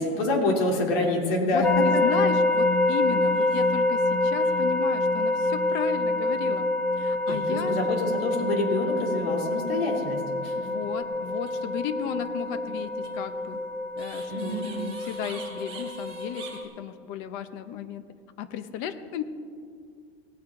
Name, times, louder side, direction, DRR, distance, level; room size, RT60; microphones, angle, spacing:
voice 1, 0.0-1.7 7.3-10.6 14.3-14.7, left 2 dB, 65° left, 0 dB, 3.0 m, -27 dB
voice 2, 1.5-6.7 7.0-8.0 10.6-13.6 14.0-16.5 16.8-18.0 18.4-19.2, left 8 dB, 35° left, 11 dB, 0.8 m, -34 dB
sound 1, 1.6-16.6, left 2 dB, 5° left, 0.4 m, -26 dB
sound 2, 3.2-3.9 4.1-4.2 4.4-5.8 6.4-6.6 7.2-8.1 11.3-11.5 13.0-16.6, right 5 dB, 15° right, 3.0 m, -47 dB
18.0 x 8.7 x 3.7 m, 2.2 s
supercardioid pair, 160°, 31 cm